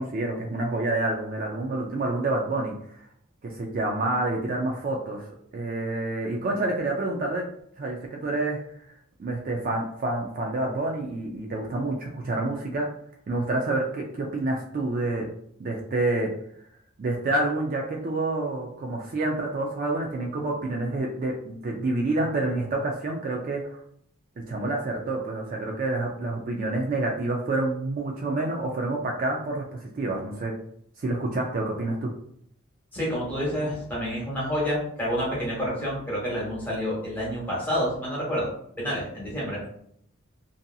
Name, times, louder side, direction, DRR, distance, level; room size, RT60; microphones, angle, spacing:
voice 1, 0.0-3.1 3.4-7.5 7.8-8.6 9.2-12.9 13.3-15.3 15.6-16.3 17.0-23.8 24.4-30.5 31.0-32.1, right 2 dB, 40° right, 0 dB, 0.3 m, -28 dB
voice 2, 32.9-38.5 38.8-39.6, equal, 10° left, -6 dB, 1.0 m, -28 dB
2.6 x 2.6 x 2.3 m, 0.69 s
head